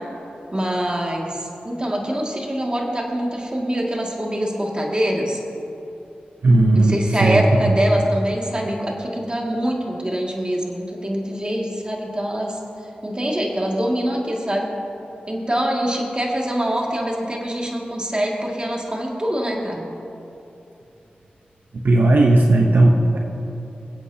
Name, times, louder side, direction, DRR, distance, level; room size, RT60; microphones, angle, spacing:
voice 1, 0.5-5.4 6.7-12.6 13.0-14.7 15.3-19.9, equal, 25° right, -1 dB, 2.1 m, -24 dB
voice 2, 6.4-7.4 21.7-23.2, right 2 dB, 70° right, 1 dB, 0.8 m, -15 dB
24.0 x 8.1 x 2.8 m, 2.9 s
cardioid pair, 45°, 3 cm